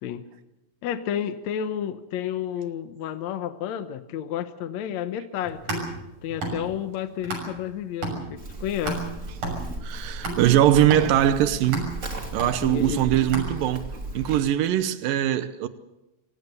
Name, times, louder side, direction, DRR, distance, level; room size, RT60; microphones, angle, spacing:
voice 1, 0.8-5.8 6.2-9.1 12.6-13.0, left 9 dB, 65° left, 2.0 m, -31 dB
sound 1, 5.4-7.7 8.0-14.0, right 2 dB, 70° right, 8.1 m, -33 dB
Livestock farm animals working animals, 8.4-14.4, right 2 dB, 25° right, 2.7 m, -36 dB
voice 2, 9.8-11.9 12.3-13.9 14.1-15.7, right 12 dB, 85° right, 2.6 m, -21 dB
26.5 x 17.0 x 6.8 m
omnidirectional pair, 3.9 m